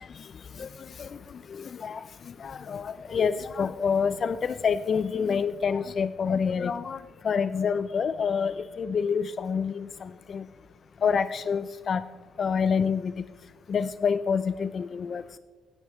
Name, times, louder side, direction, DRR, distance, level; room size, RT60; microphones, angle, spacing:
voice 1, 0.6-1.2 1.5-10.5 11.0-12.0 12.4-13.2 13.7-15.2, left 6 dB, 50° left, 14 dB, 0.4 m, -27 dB
16.0 x 10.5 x 3.1 m, 1.4 s
cardioid pair, 90°, 0 cm